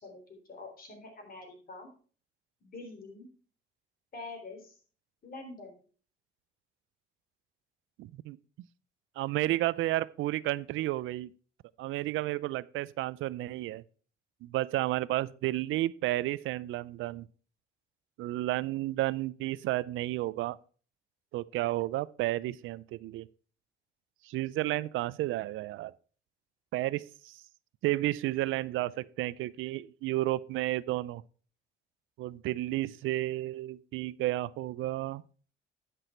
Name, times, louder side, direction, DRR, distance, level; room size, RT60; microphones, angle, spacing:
voice 1, 0.0-1.9 2.6-3.3 4.1-4.8 5.2-5.8, left 3 dB, 50° left, 3.7 m, -46 dB
voice 2, 8.0-8.4 9.2-11.3 11.8-13.8 14.4-17.3 18.2-20.6 21.3-23.3 24.3-25.9 26.7-27.3 27.8-31.2 32.2-35.2, right 16 dB, 85° right, 0.4 m, -32 dB
10.5 x 6.1 x 4.4 m
cardioid pair, 90°, 20 cm